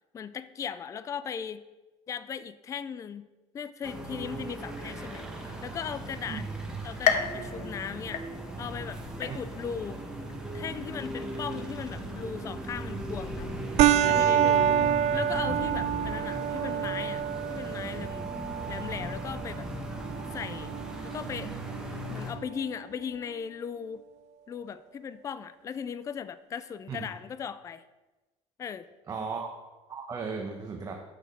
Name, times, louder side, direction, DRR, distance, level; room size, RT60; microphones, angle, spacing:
voice 1, 0.1-1.6 2.1-3.3 3.5-6.4 6.8-8.2 8.6-10.0 10.5-13.5 14.1-17.2 17.5-18.3 18.7-19.7 19.9-20.0 20.3-20.8 21.0-21.5 22.1-24.0 24.5-27.8 28.6-28.9, left 7 dB, 25° left, 14 dB, 0.3 m, -38 dB
sound 1, 3.8-22.3, right 1 dB, 5° right, 1.4 m, -38 dB
sound 2, 7.0-8.8 9.2-9.8 10.3-10.4 11.4-11.5, left 7 dB, 60° left, 0.8 m, -31 dB
sound 3, 13.8-22.8, right 10 dB, 60° right, 0.4 m, -28 dB
voice 2, 29.1-29.5 29.9-30.9, right 5 dB, 25° right, 2 dB, 0.9 m, -36 dB
6.5 x 6.2 x 5.2 m, 1.1 s
cardioid pair, 125°, 13 cm